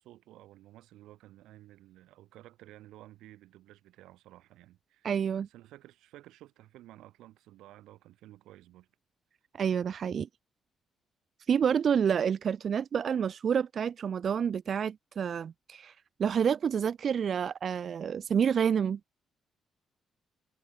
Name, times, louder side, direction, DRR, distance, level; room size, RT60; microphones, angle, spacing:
voice 1, 0.0-8.9, right 15 dB, 90° right, 4.1 m, -54 dB
voice 2, 5.0-5.5 9.6-10.3 11.5-19.0, right 7 dB, 55° right, 0.8 m, -28 dB
cardioid pair, 90°, 0 cm